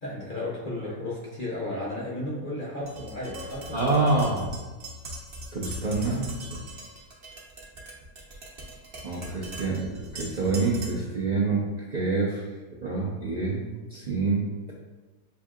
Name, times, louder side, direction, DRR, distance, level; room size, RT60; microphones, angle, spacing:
voice 1, 0.0-4.0, left 1 dB, 40° left, -5 dB, 0.7 m, -34 dB
Tap, 2.9-11.1, equal, 45° right, 0.9 m, -40 dB
voice 2, 3.7-4.4 5.5-6.3 9.0-11.6 11.9-12.4 12.8-13.6 13.9-14.4, right 3 dB, 60° right, -5 dB, 0.4 m, -26 dB
7.0 x 2.7 x 2.4 m, 1.3 s
omnidirectional pair, 1.7 m